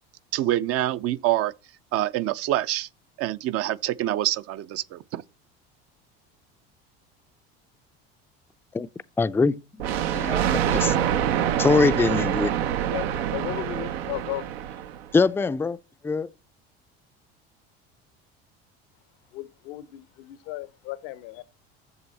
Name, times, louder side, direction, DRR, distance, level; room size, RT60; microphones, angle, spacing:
voice 1, 0.3-1.5 1.9-2.9 3.2-5.2, right 14 dB, 50° right, 0.5 m, -26 dB
voice 2, 9.2-9.6 10.1-10.9 11.6-12.5 15.1-15.8 16.0-16.3, left 4 dB, 10° left, 0.4 m, -22 dB
Thunder, 9.8-15.1, right 10 dB, 90° right, 0.7 m, -25 dB
voice 3, 12.9-14.7 19.3-21.4, left 16 dB, 75° left, 0.8 m, -35 dB
7.9 x 6.8 x 4.1 m
supercardioid pair, 85°, 30 cm